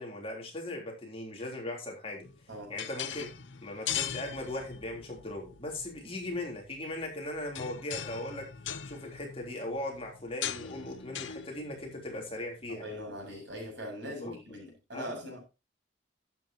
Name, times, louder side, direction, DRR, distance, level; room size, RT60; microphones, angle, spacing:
voice 1, 0.0-2.3 2.7-3.3 3.6-8.5 8.8-12.9 14.2-14.3 14.9-15.1, left 1 dB, 30° left, 3.4 m, -38 dB
sound 1, 2.2-13.6, left 9 dB, 80° left, 0.9 m, -41 dB
voice 2, 12.7-15.4, equal, 65° right, 7.0 m, -41 dB
12.0 x 9.1 x 2.9 m
head